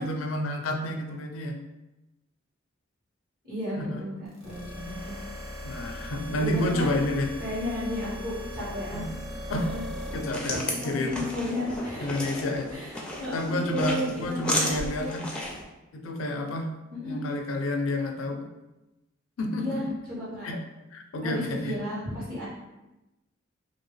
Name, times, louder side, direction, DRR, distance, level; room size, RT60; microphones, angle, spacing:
voice 1, 0.0-1.6 3.8-4.0 5.6-7.3 8.9-9.1 9.5-9.7 10.1-11.3 12.0-12.7 13.3-15.3 15.9-16.7 17.0-18.5 19.4-19.8 20.4-20.6 20.9-21.8, left 1 dB, 80° left, 4 dB, 0.4 m, -30 dB
voice 2, 3.4-5.2 5.6-5.9 6.4-6.9 7.4-9.1 9.5-9.8 10.5-12.1 12.7-15.2 16.9-17.2 19.6-20.5 21.2-22.4, left 1 dB, 50° right, -8 dB, 1.5 m, -34 dB
sound 1, 4.3-10.3, left 1 dB, 80° right, 0.9 m, -38 dB
sound 2, 9.9-15.6, left 1 dB, 5° left, 0.4 m, -34 dB
2.9 x 2.8 x 3.1 m, 1.0 s
head